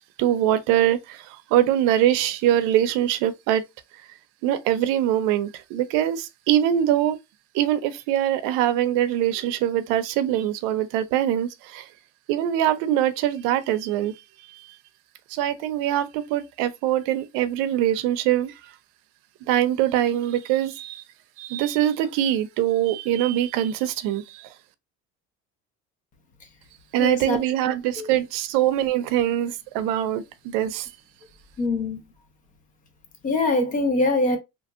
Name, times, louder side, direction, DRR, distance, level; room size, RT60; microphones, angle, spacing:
voice 1, 0.2-3.6 4.4-7.2 7.5-11.9 12.3-14.1 14.5-14.6 15.3-18.5 19.5-21.0 21.4-24.5 26.9-30.9, right 12 dB, 90° right, 0.5 m, -23 dB
voice 2, 27.0-27.4 28.0-28.1 31.6-32.0 33.2-34.4, left 2 dB, 25° left, 0.4 m, -23 dB
2.8 x 2.6 x 2.4 m
cardioid pair, 180°, 31 cm